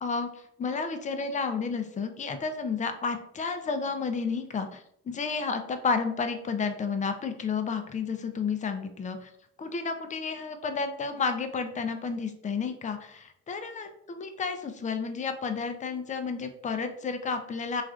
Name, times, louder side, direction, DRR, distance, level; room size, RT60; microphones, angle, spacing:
voice 1, 0.0-9.3 9.6-17.8, left 5 dB, 25° left, 8 dB, 0.4 m, -31 dB
3.1 x 2.4 x 2.4 m, 0.71 s
cardioid pair, 90°, 30 cm